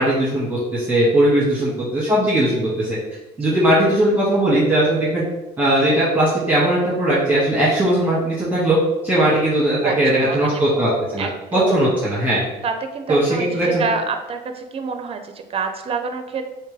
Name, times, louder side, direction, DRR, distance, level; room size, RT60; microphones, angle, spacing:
voice 1, 0.0-3.0 3.4-5.2 5.6-11.2 11.5-12.4 13.1-13.8, right 1 dB, 10° right, -9 dB, 1.4 m, -18 dB
voice 2, 9.8-10.6 11.2-11.8 12.6-16.4, right 4 dB, 35° right, 7 dB, 0.5 m, -27 dB
3.3 x 3.3 x 3.3 m, 1.0 s
cardioid pair, 110°, 17 cm